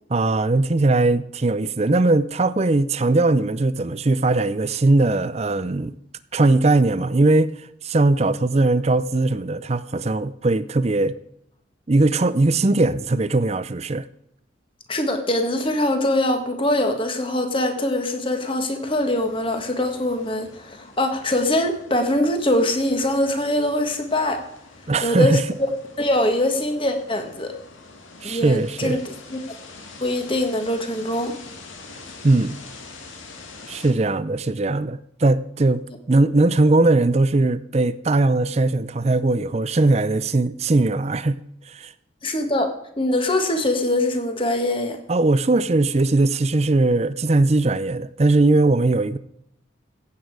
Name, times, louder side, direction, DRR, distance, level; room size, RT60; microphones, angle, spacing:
voice 1, 0.1-6.0 6.3-11.1 11.9-14.1 24.9-25.4 28.2-29.0 32.2-32.6 33.7-41.4 41.7-41.9 45.1-49.2, right 2 dB, 30° right, 0.5 m, -20 dB
voice 2, 14.9-24.4 25.0-25.4 26.0-27.5 28.2-29.4 30.0-31.4 42.2-42.7 43.0-45.0, left 1 dB, 25° left, 1.6 m, -23 dB
sound 1, 18.8-33.9, left 3 dB, 80° left, 2.1 m, -45 dB
15.5 x 8.5 x 4.8 m
head